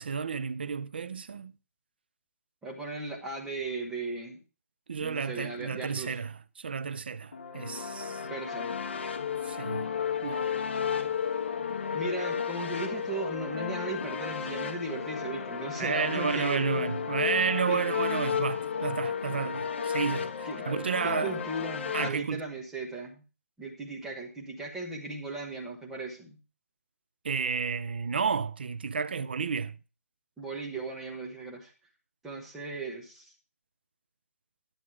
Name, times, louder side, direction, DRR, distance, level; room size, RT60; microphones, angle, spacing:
voice 1, 0.0-1.5 4.9-8.3 9.4-9.9 10.2-10.6 15.8-21.4 21.9-22.4 27.2-29.8, right 6 dB, 40° right, 0.5 m, -31 dB
voice 2, 2.6-4.4 5.0-6.2 8.3-8.8 10.9-11.0 11.9-16.9 17.7-17.8 20.5-20.6 21.0-23.2 23.6-26.4 30.4-31.7 32.2-33.3, right 2 dB, 5° right, 1.1 m, -37 dB
sound 1, 7.3-22.1, left 7 dB, 50° left, 1.2 m, -33 dB
11.5 x 7.4 x 4.7 m
hypercardioid pair, 180°, 8 cm